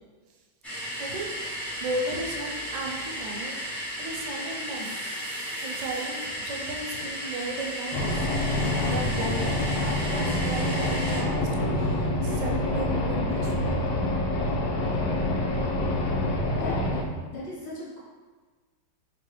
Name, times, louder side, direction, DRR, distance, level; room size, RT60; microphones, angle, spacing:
sound 1, 0.6-11.2, equal, ahead, 0.3 m, -34 dB
voice 1, 1.0-3.6 4.0-5.0 5.6-8.3 8.8-13.8, right 2 dB, 80° right, 0 dB, 1.3 m, -35 dB
sound 2, 7.9-17.0, left 1 dB, 70° left, 1.1 m, -26 dB
voice 2, 17.3-18.0, left 2 dB, 25° left, -7 dB, 1.0 m, -37 dB
4.5 x 3.0 x 3.1 m, 1.4 s
omnidirectional pair, 2.1 m